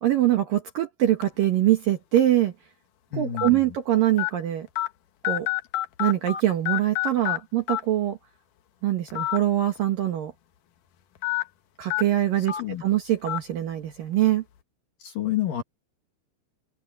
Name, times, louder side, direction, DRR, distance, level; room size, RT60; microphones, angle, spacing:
voice 1, 0.0-2.5 3.1-4.7 5.2-5.5 6.0-8.2 8.8-10.3 11.8-14.4, right 13 dB, 65° right, 2.4 m, -23 dB
sound 1, 1.2-1.4 2.2-2.3 3.4-3.5 4.2-4.3 4.8-4.9 5.2-6.4 6.7-7.4 7.7-7.8 9.1-9.4 9.8-9.9 11.2-11.4 11.9-12.0 12.5-12.6 13.3-13.4, left 16 dB, 75° left, 1.9 m, -26 dB
voice 2, 3.1-3.8 12.6-12.8 15.0-15.6, left 11 dB, 55° left, 2.9 m, -29 dB
open air
omnidirectional pair, 5.6 m